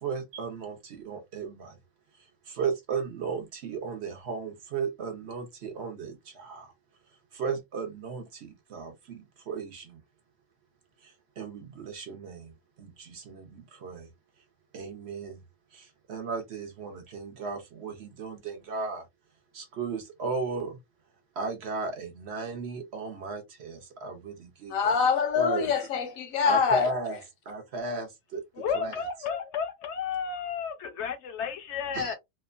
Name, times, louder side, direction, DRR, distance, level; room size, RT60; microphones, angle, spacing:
voice 1, 0.0-1.8 2.5-6.7 7.3-10.0 11.0-12.5 12.8-14.1 14.7-15.4 15.7-19.0 19.5-20.8 21.4-24.9 25.4-25.7 26.4-27.2 27.5-28.4 28.7-28.9 31.9-32.1, right 4 dB, 60° right, 0.9 m, -35 dB
voice 2, 24.7-26.9, left 6 dB, 85° left, 1.2 m, -25 dB
voice 3, 28.5-32.1, left 7 dB, 65° left, 0.8 m, -32 dB
2.9 x 2.1 x 2.4 m
omnidirectional pair, 1.4 m